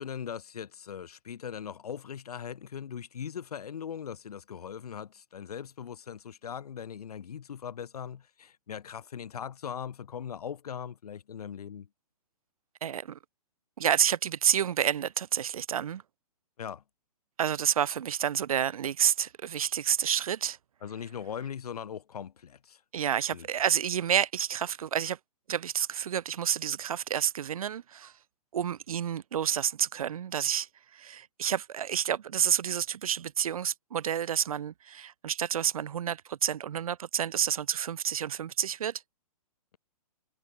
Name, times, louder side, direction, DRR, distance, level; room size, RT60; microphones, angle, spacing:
voice 1, 0.0-11.9 16.6-16.8 20.8-22.8 23.3-23.5, left 8 dB, 75° left, 1.5 m, -40 dB
voice 2, 12.8-13.2 13.8-16.0 17.4-20.6 22.9-25.2 25.5-28.1 28.5-39.0, right 9 dB, 65° right, 0.9 m, -29 dB
hypercardioid pair, 170°, 20 cm